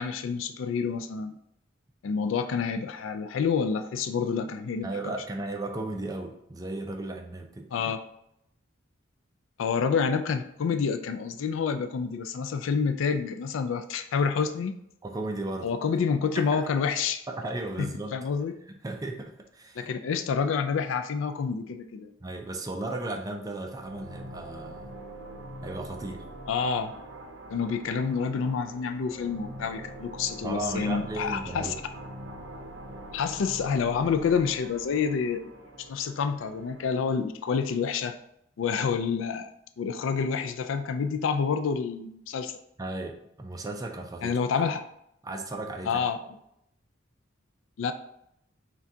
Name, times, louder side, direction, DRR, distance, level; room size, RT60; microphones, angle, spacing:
voice 1, 0.0-1.3 2.0-5.1 7.7-8.0 9.6-14.7 15.6-17.2 17.8-18.5 19.8-22.1 26.5-26.9 27.5-31.7 33.1-35.5 35.8-38.2 38.6-39.5 39.8-42.6 44.2-44.8 45.9-46.2 47.8-47.9, left 6 dB, 75° left, 9 dB, 0.3 m, -28 dB
voice 2, 4.8-7.7 15.0-15.7 16.0-16.1 16.3-16.7 17.3-18.2 18.7-19.9 22.2-24.9 25.6-26.3 30.4-31.8 42.8-44.6 45.2-46.1, right 2 dB, 20° right, 3 dB, 0.4 m, -35 dB
sound 1, 23.8-37.1, right 1 dB, 65° right, 0.6 m, -44 dB
5.9 x 2.3 x 2.7 m, 0.76 s
head